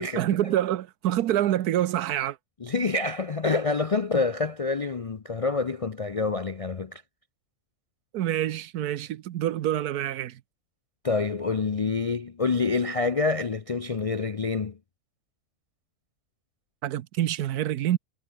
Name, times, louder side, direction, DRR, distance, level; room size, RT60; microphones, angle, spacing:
voice 1, 0.0-2.4 8.1-10.4 16.8-18.0, right 12 dB, 85° right, 1.3 m, -26 dB
voice 2, 2.6-7.0 11.0-14.8, left 4 dB, 50° left, 0.4 m, -27 dB
omnidirectional pair, 1.6 m